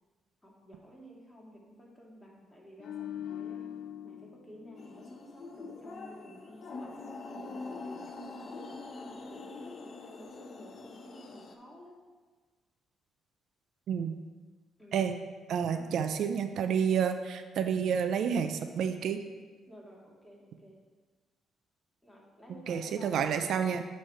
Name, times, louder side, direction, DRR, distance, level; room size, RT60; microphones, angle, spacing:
voice 1, 0.4-3.7 4.0-12.0 14.8-15.1 15.7-15.8 19.7-20.8 22.0-23.4, equal, 15° left, -3 dB, 2.0 m, -52 dB
sound 1, 2.8-6.1 6.4-6.6, left 10 dB, 80° left, 0.3 m, -43 dB
sound 2, 4.8-11.6, left 3 dB, 50° left, 0.7 m, -44 dB
voice 2, 15.5-19.2 22.7-23.9, right 7 dB, 70° right, 8 dB, 0.4 m, -29 dB
8.8 x 3.3 x 5.5 m, 1.4 s
cardioid pair, 90°, 0 cm